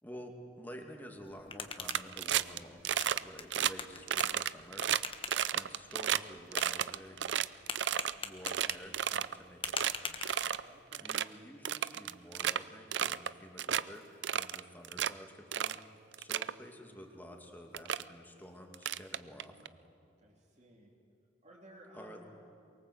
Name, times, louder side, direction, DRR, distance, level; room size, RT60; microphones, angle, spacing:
voice 1, 0.0-4.9 5.4-7.4 8.2-10.2 11.0-14.0 14.3-15.9 16.2-19.8 21.9-22.3, equal, 10° left, 2 dB, 2.4 m, -50 dB
sound 1, 1.2-10.8, left 5 dB, 30° left, 1.3 m, -45 dB
sound 2, 1.8-2.6 2.8-3.2 3.5-3.7 4.1-6.2 6.5-8.1 8.4-9.3 9.6-9.9 10.2-10.6 10.9-11.2 11.6-12.6 12.9-13.3 13.6-13.8 14.2-15.1 15.5-15.8 16.1-16.5 17.3-17.4 17.7-18.0 18.7-19.7, right 10 dB, 80° right, 0.5 m, -32 dB
voice 2, 10.6-11.2 20.2-20.9 21.4-22.3, right 1 dB, 40° right, -7 dB, 3.3 m, -57 dB
23.5 x 22.5 x 8.1 m, 2.5 s
head